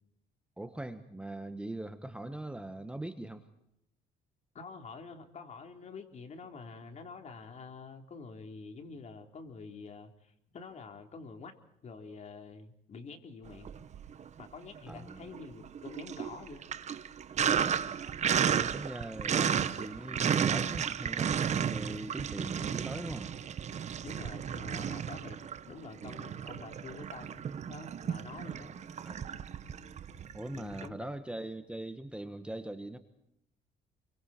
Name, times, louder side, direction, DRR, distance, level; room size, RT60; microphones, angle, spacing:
voice 1, 0.6-3.4 14.9-15.3 17.6-17.9 18.5-23.3 29.0-29.3 30.3-33.0, right 1 dB, 5° right, 8 dB, 1.3 m, -41 dB
voice 2, 4.5-11.6 11.8-13.7 14.4-16.6 22.1-22.2 24.0-25.4 25.7-28.7 30.5-31.1, left 4 dB, 45° left, 4 dB, 3.7 m, -47 dB
Sink (filling or washing), 13.5-14.4 14.8-30.9, right 8 dB, 40° right, 1.1 m, -33 dB
30.0 x 23.5 x 4.4 m, 0.80 s
cardioid pair, 110°, 17 cm